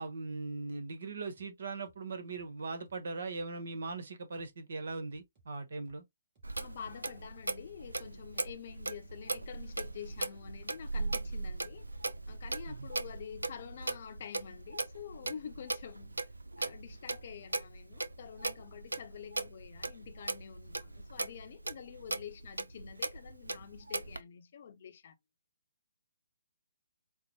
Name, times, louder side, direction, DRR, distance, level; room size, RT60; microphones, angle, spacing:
voice 1, 0.0-6.0 12.7-12.9, right 3 dB, 60° right, 1.1 m, -40 dB
sound 1, 1.3-1.5 1.8-2.0 2.3-2.5 2.8-3.0 3.3-3.5 3.8-4.0 4.3-4.5 4.8-5.5 5.8-6.0 6.3-6.5 6.8-7.0 7.3-7.5 7.8-8.0 8.3-9.5 9.8-10.0 10.3-10.5 10.8-11.0 11.3-11.5 11.8-12.0 12.3-12.5 12.8-13.5 13.8-14.0 14.3-14.5 14.8-15.0, right 3 dB, 30° right, 2.1 m, -67 dB
Clock, 6.4-24.2, right 2 dB, 85° right, 0.5 m, -39 dB
voice 2, 6.6-11.9 12.2-16.3 16.6-25.2, left 8 dB, 50° left, 0.7 m, -48 dB
4.6 x 2.0 x 3.0 m
figure-of-eight pair, 135°, 0 cm